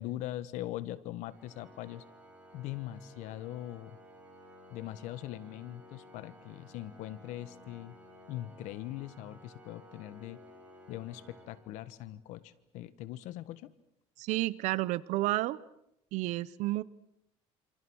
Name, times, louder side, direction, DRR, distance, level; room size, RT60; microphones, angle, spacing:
voice 1, 0.0-2.0 2.5-4.0 4.7-8.0 8.3-10.4 10.9-13.7, left 14 dB, 80° left, 15 dB, 1.5 m, -41 dB
Organ, 1.3-12.3, equal, 10° right, 6.4 m, -56 dB
voice 2, 14.2-15.6 16.1-16.8, right 18 dB, 75° right, 19 dB, 1.0 m, -31 dB
27.5 x 27.0 x 6.4 m, 0.79 s
cardioid pair, 145°, 12 cm